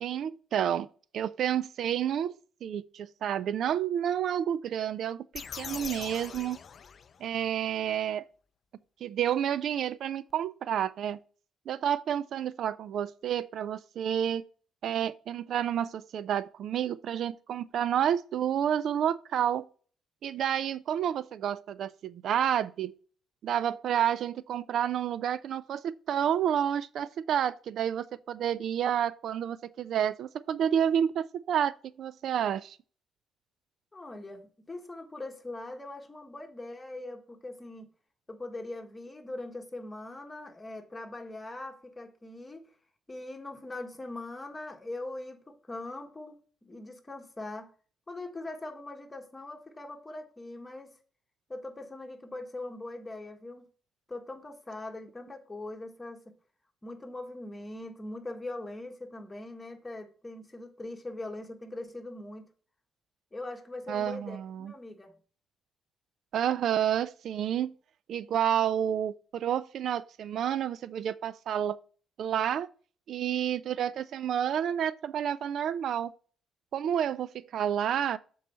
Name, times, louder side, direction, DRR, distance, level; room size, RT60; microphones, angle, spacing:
voice 1, 0.0-0.9 1.1-2.3 2.6-6.6 7.2-8.2 9.0-11.2 11.7-14.5 14.8-19.7 20.2-22.9 23.4-32.8 63.9-64.7 66.3-67.7 68.1-71.8 72.2-72.7 73.1-76.1 76.7-78.2, right 9 dB, 70° right, 0.3 m, -30 dB
sound 1, 5.3-7.5, left 6 dB, 50° left, 0.4 m, -42 dB
voice 2, 33.9-37.9 38.3-42.7 43.1-47.7 48.1-50.9 51.5-53.7 54.1-56.2 56.8-62.5 63.3-65.1, left 2 dB, 20° left, 1.5 m, -41 dB
7.2 x 4.7 x 4.3 m
cardioid pair, 90°, 0 cm